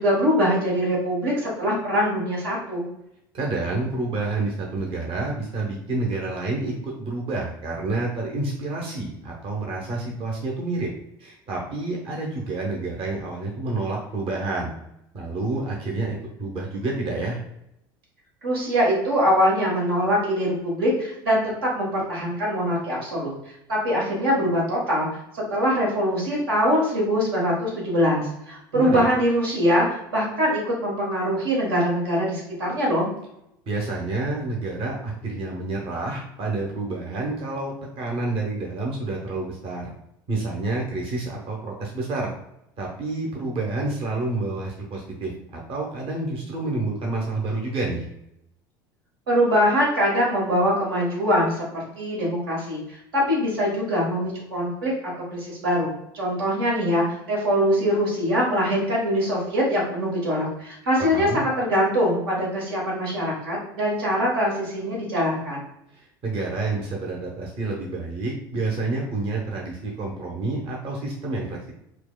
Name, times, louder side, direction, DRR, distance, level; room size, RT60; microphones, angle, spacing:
voice 1, 0.0-2.9 18.4-23.3 23.7-25.1 25.3-33.1 49.3-55.9 56.1-65.6, equal, 90° right, -4 dB, 1.4 m, -23 dB
voice 2, 3.3-10.9 11.2-14.7 15.1-17.4 28.7-29.1 33.7-39.9 40.3-42.3 42.8-48.1 61.0-61.4 65.9-71.7, right 2 dB, 50° right, -1 dB, 0.9 m, -29 dB
4.5 x 2.2 x 2.3 m, 0.80 s
hypercardioid pair, 80°, 12 cm